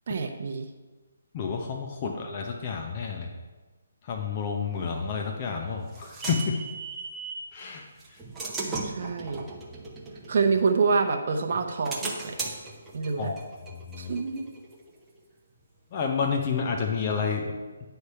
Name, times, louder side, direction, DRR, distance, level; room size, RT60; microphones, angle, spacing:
voice 1, 0.1-0.7 8.7-9.5 10.3-12.5 12.9-13.3 14.0-14.5, right 4 dB, 50° right, 3 dB, 0.7 m, -27 dB
voice 2, 1.3-3.3 4.0-6.6 7.5-7.8 8.1-8.2 13.2-14.2 15.9-17.5, left 5 dB, 30° left, 2 dB, 0.7 m, -30 dB
sound 1, 5.3-7.5 8.0-11.1 11.5-15.0, right 3 dB, 5° right, 0.7 m, -37 dB
9.7 x 3.4 x 5.5 m, 1.2 s
hypercardioid pair, 160°, 0 cm